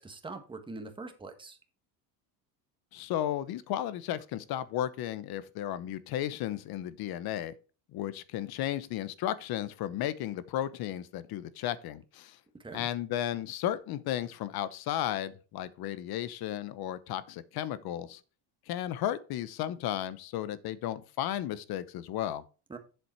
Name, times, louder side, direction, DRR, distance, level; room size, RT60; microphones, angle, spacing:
voice 1, 0.0-1.6 12.5-12.9 22.7-22.8, right 3 dB, 10° right, 1.5 m, -43 dB
voice 2, 2.9-7.5 7.9-12.4 12.7-18.2 18.7-22.4, left 12 dB, 55° left, 1.0 m, -34 dB
8.1 x 6.9 x 4.5 m
cardioid pair, 135°, 44 cm